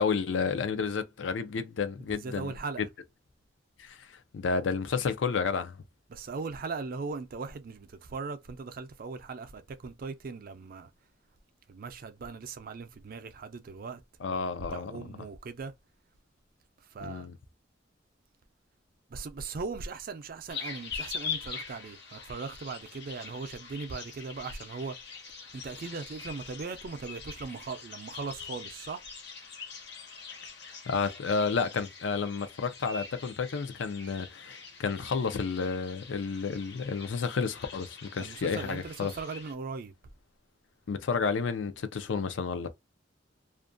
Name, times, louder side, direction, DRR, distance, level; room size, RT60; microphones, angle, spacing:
voice 1, 0.0-2.5 3.8-5.8 14.2-15.1 17.0-17.4 30.9-39.1 40.9-42.7, left 5 dB, 80° left, 0.4 m, -31 dB
voice 2, 2.0-2.9 6.1-10.9 11.7-14.0 14.3-15.7 16.8-17.3 19.1-25.0 25.5-29.1 38.2-39.9, right 4 dB, 50° right, 0.4 m, -39 dB
sound 1, 20.5-39.5, left 6 dB, 65° left, 0.9 m, -43 dB
2.5 x 2.2 x 2.4 m
head